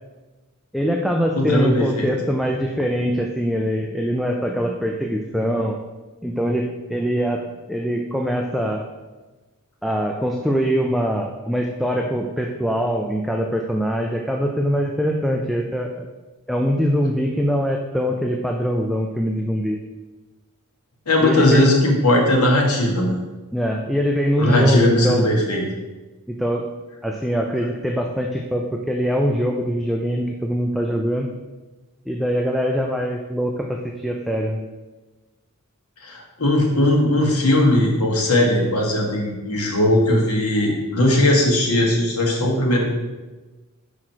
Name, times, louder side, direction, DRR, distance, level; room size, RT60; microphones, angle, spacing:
voice 1, 0.7-5.8 6.2-7.4 7.7-8.8 9.8-16.1 16.5-19.8 21.2-21.7 23.5-25.3 26.3-26.7 27.0-31.3 32.1-34.6, equal, ahead, 1 dB, 0.4 m, -23 dB
voice 2, 1.4-2.1 21.1-23.2 24.4-25.6 36.0-42.8, left 1 dB, 85° left, 0 dB, 1.5 m, -18 dB
5.9 x 4.9 x 4.5 m, 1.2 s
head